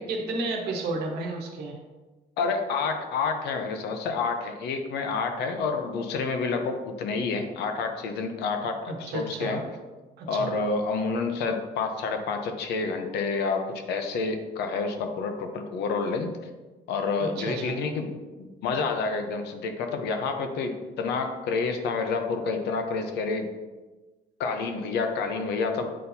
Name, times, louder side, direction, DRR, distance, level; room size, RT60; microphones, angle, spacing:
voice 1, 0.0-1.8 8.9-9.6 10.2-10.5 17.2-17.8, right 3 dB, 75° right, 2 dB, 1.0 m, -32 dB
voice 2, 2.4-9.6 10.3-16.3 16.9-23.5 24.4-26.0, left 4 dB, 80° left, 6 dB, 0.8 m, -29 dB
8.4 x 4.3 x 2.7 m, 1.2 s
cardioid pair, 110°, 17 cm